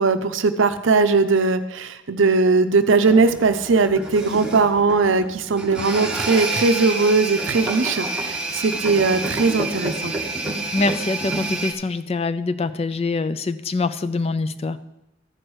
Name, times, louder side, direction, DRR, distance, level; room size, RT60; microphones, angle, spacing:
voice 1, 0.0-10.1, right 4 dB, 75° right, 10 dB, 0.6 m, -19 dB
sound 1, 3.0-11.7, right 2 dB, 5° right, 1.2 m, -28 dB
voice 2, 10.7-14.8, left 3 dB, 30° left, 13 dB, 0.4 m, -24 dB
13.5 x 4.8 x 6.1 m, 0.91 s
head